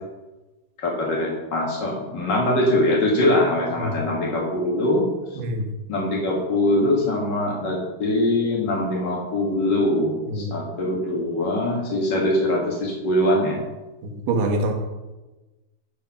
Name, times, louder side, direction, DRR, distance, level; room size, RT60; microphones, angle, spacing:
voice 1, 0.8-5.0 5.3-5.4 5.9-13.6, left 1 dB, 75° left, -2 dB, 1.0 m, -22 dB
voice 2, 14.3-14.7, right 1 dB, 75° right, 2 dB, 3.2 m, -24 dB
11.5 x 4.4 x 5.8 m, 1.1 s
omnidirectional pair, 4.6 m